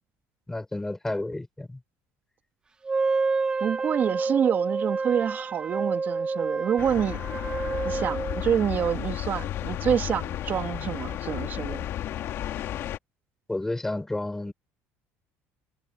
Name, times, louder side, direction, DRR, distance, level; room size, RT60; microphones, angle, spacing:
voice 1, 0.5-1.8 13.5-14.5, left 2 dB, 5° left, 5.5 m, -31 dB
Wind instrument woodwind instrument, 2.8-8.5, right 4 dB, 15° right, 1.3 m, -28 dB
voice 2, 3.6-7.2 7.8-11.9, right 8 dB, 35° right, 2.7 m, -27 dB
sound 1, 6.8-13.0, left 12 dB, 50° left, 1.8 m, -33 dB
cardioid pair, 160°, 6 cm